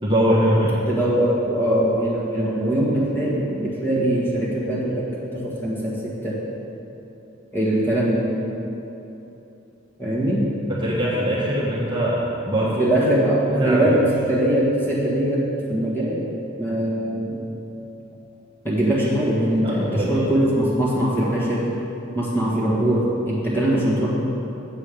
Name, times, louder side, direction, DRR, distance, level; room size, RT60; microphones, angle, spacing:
voice 1, 0.0-0.7 10.7-12.2 12.4-12.9 13.5-13.9 19.6-20.3, equal, 25° right, -7 dB, 1.3 m, -22 dB
voice 2, 0.9-5.9 6.2-6.4 7.5-8.2 10.0-10.5 12.8-14.0 14.3-16.3 16.6-17.4 18.6-21.6 22.1-24.1, right 1 dB, 10° left, -7 dB, 1.6 m, -22 dB
7.6 x 7.5 x 5.0 m, 3.0 s
head